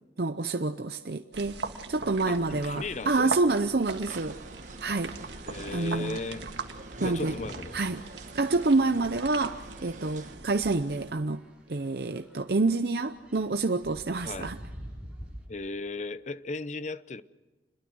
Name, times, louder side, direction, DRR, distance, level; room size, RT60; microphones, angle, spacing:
voice 1, 0.2-1.6 1.9-4.4 4.8-5.1 5.7-6.2 7.0-7.3 7.7-8.0 8.3-11.4 11.7-14.6, right 3 dB, 60° right, 0.7 m, -27 dB
sound 1, 1.3-11.1, right 4 dB, 80° right, 1.7 m, -41 dB
voice 2, 2.3-3.3 5.5-6.4 7.0-7.8 14.2-14.5 15.5-17.2, left 3 dB, 40° left, 0.7 m, -36 dB
sound 2, 3.8-10.4, right 2 dB, 45° right, 1.5 m, -45 dB
sound 3, 6.0-15.5, equal, 5° right, 6.7 m, -49 dB
27.0 x 21.5 x 6.3 m
head